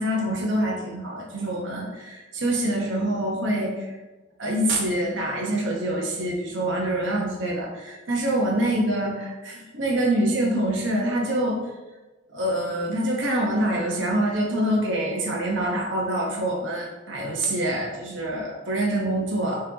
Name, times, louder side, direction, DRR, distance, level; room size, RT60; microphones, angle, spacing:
voice 1, 0.0-4.0 4.4-11.6 12.3-19.6, right 1 dB, 75° right, -2 dB, 1.0 m, -25 dB
5.6 x 3.2 x 2.9 m, 1.1 s
head